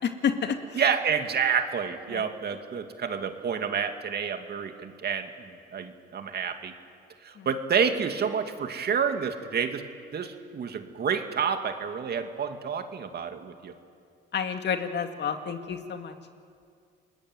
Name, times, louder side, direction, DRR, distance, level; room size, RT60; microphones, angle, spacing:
voice 1, 0.0-0.8 2.1-2.3 7.4-7.5 14.3-16.1, left 7 dB, 60° left, 6 dB, 2.2 m, -30 dB
voice 2, 0.8-6.7 7.2-9.8 10.1-13.7, right 6 dB, 55° right, 6 dB, 2.3 m, -29 dB
29.5 x 20.5 x 9.2 m, 2.3 s
cardioid pair, 90°, 20 cm